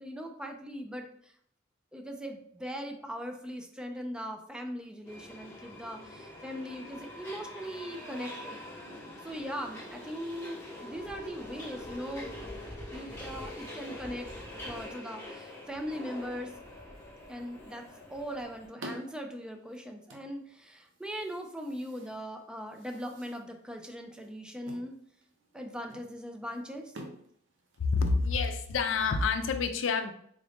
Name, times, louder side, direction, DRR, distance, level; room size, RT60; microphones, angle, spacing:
voice 1, 0.0-1.3 1.9-8.6 9.2-12.3 12.9-14.3 14.6-16.5 17.3-25.0 25.5-26.9, equal, 5° right, 3 dB, 0.4 m, -40 dB
Subway metro underground, 5.0-18.7, left 1 dB, 15° left, 1.1 m, -44 dB
sound 1, 18.0-28.9, right 1 dB, 70° right, 0.7 m, -51 dB
voice 2, 27.8-30.1, left 4 dB, 70° left, 8 dB, 0.5 m, -28 dB
3.7 x 2.6 x 3.4 m, 0.65 s
head